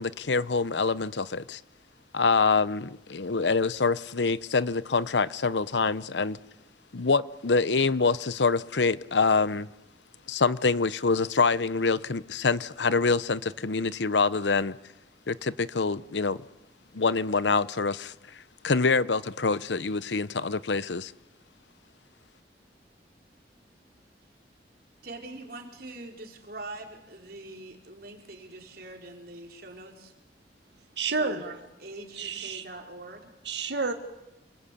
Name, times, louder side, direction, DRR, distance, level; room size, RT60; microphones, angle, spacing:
voice 1, 0.0-1.6 2.1-6.4 6.9-9.7 10.3-14.8 15.3-16.4 16.9-21.1, left 4 dB, 85° left, 17 dB, 0.8 m, -25 dB
voice 2, 25.0-30.1 31.2-33.3, right 2 dB, 55° right, 2 dB, 4.6 m, -43 dB
voice 3, 31.0-31.4 32.2-32.6 33.5-33.9, right 4 dB, 80° right, 7 dB, 1.9 m, -29 dB
29.0 x 21.0 x 8.5 m, 0.96 s
head